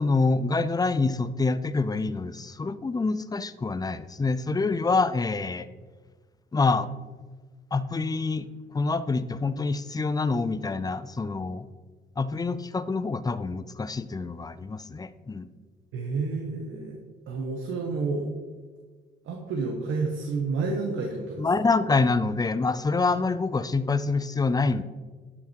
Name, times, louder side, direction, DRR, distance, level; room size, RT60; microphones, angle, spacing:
voice 1, 0.0-5.7 6.5-6.9 7.7-8.5 8.7-11.7 12.2-15.5 21.4-24.8, left 3 dB, 20° left, 14 dB, 0.5 m, -26 dB
voice 2, 15.9-17.0 17.3-18.3 19.2-21.7, right 4 dB, 80° right, 2 dB, 1.3 m, -30 dB
11.5 x 6.0 x 4.6 m, 1.4 s
cardioid pair, 90°, 20 cm